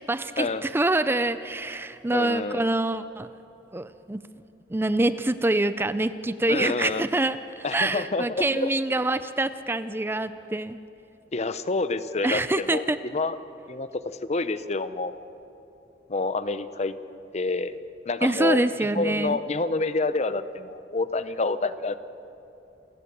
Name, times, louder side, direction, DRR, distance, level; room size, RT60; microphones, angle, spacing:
voice 1, 0.0-3.3 3.7-4.2 4.7-10.8 12.2-13.0 18.2-19.4, right 2 dB, 15° right, 13 dB, 0.5 m, -25 dB
voice 2, 2.1-2.7 6.5-7.1 7.6-8.7 11.3-12.8 13.1-13.4 13.7-13.9 14.3-15.1 16.1-16.9 17.3-17.8 18.1-22.0, left 3 dB, 40° left, 13 dB, 0.7 m, -28 dB
28.5 x 15.0 x 7.0 m, 2.9 s
head